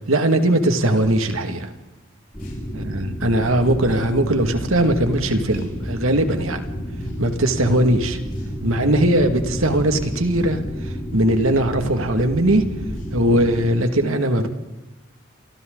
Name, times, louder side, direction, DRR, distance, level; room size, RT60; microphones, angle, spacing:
voice 1, 0.1-1.7 2.8-6.6 7.2-8.2 8.6-12.6 13.1-14.5, right 1 dB, 80° right, 6 dB, 2.2 m, -20 dB
sound 1, 1.0-1.2 2.3-2.6 3.8-4.0 5.5-5.7 6.9-7.2 8.2-8.7 9.9-10.2 11.7-12.0 12.8-13.1, equal, 40° left, 7.1 m, -41 dB
sound 2, 2.3-13.7, equal, 15° left, 5.6 m, -31 dB
28.5 x 24.5 x 4.0 m, 1.1 s
head